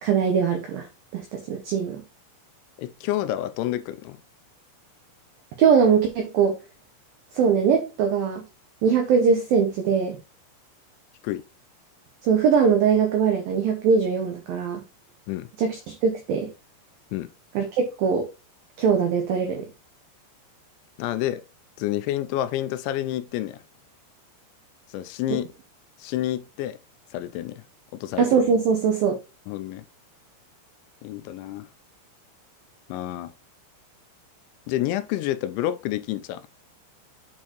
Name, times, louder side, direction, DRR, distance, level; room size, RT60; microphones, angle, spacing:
voice 1, 0.0-0.9 1.1-2.0 5.6-6.6 7.3-8.4 8.8-10.2 12.2-14.8 15.6-16.5 17.6-18.3 18.8-19.7 28.2-29.2, right 6 dB, 85° right, 2.0 m, -21 dB
voice 2, 2.8-4.2 11.2-11.4 15.3-15.5 17.1-17.3 21.0-21.4 21.8-23.6 24.9-25.5 26.0-26.8 27.1-27.7 27.9-28.3 29.5-29.8 31.0-31.7 32.9-33.3 34.7-36.5, left 13 dB, 85° left, 2.8 m, -29 dB
8.4 x 4.4 x 3.0 m
omnidirectional pair, 5.3 m